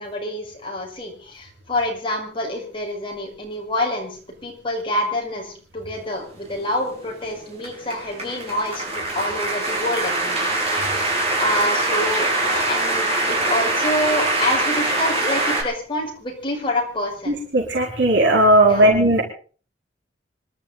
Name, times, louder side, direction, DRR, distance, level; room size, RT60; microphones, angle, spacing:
voice 1, 0.0-17.4 18.6-18.9, left 1 dB, 30° left, 0 dB, 6.6 m, -27 dB
sound 1, 6.3-15.6, right 2 dB, 35° right, 7.3 m, -23 dB
voice 2, 17.3-19.2, right 1 dB, 75° right, 0 dB, 5.0 m, -16 dB
26.5 x 12.5 x 4.0 m, 0.41 s
head